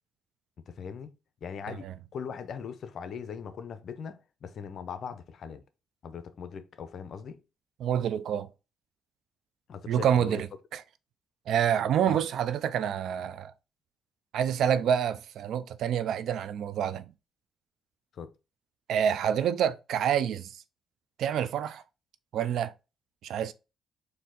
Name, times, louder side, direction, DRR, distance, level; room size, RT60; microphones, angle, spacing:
voice 1, 0.6-1.1 1.4-5.6 6.0-7.4 9.7-10.4 12.1-12.2 18.1-18.3, left 6 dB, 60° left, 0.6 m, -40 dB
voice 2, 7.8-8.5 9.9-10.8 11.5-13.5 14.3-17.1 18.9-20.6 21.2-21.8 22.3-22.7 23.2-23.5, right 9 dB, 75° right, 0.4 m, -27 dB
4.3 x 2.7 x 3.7 m
cardioid pair, 90°, 0 cm